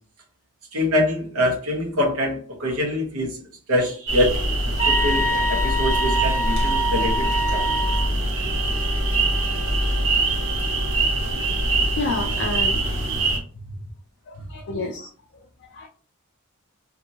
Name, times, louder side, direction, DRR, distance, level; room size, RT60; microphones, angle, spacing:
voice 1, 0.7-3.4 3.7-4.4 4.9-7.6, left 1 dB, 80° right, 1 dB, 1.0 m, -24 dB
sound 1, 4.1-13.4, right 2 dB, 60° right, 0.9 m, -23 dB
sound 2, 4.8-8.1, equal, 35° right, 0.6 m, -25 dB
Wind instrument woodwind instrument, 8.4-12.4, left 4 dB, 20° left, 0.7 m, -40 dB
voice 2, 12.0-12.8 14.3-15.1 15.7-15.9, left 2 dB, 55° left, 1 dB, 0.4 m, -28 dB
2.6 x 2.6 x 2.9 m, 0.42 s
head